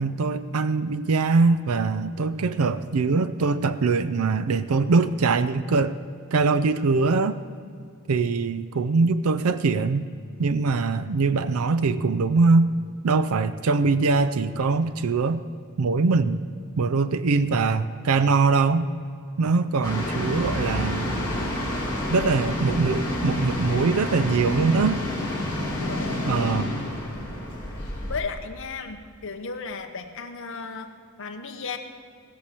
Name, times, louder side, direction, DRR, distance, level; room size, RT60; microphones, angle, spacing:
voice 1, 0.0-5.9 6.3-7.4 8.1-10.1 10.4-12.7 13.0-15.4 15.8-16.4 16.8-18.9 19.4-21.1 22.1-25.0 26.3-26.8, right 4 dB, 85° right, 13 dB, 0.5 m, -22 dB
sound 1, 19.8-28.2, left 1 dB, 10° left, 3.4 m, -29 dB
voice 2, 25.8-26.5 28.1-31.8, left 4 dB, 65° left, 5 dB, 1.1 m, -35 dB
17.5 x 7.0 x 6.6 m, 2.3 s
head